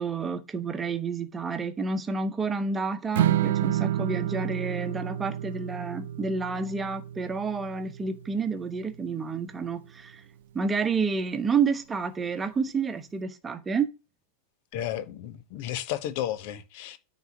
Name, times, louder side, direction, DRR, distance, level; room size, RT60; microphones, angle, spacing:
voice 1, 0.0-10.2 10.5-13.9, right 5 dB, 15° right, 1.1 m, -29 dB
Strum, 3.2-9.4, right 12 dB, 55° right, 0.5 m, -30 dB
voice 2, 14.7-17.0, left 12 dB, 45° left, 0.9 m, -33 dB
9.3 x 4.2 x 6.1 m
figure-of-eight pair, 90°, 0 cm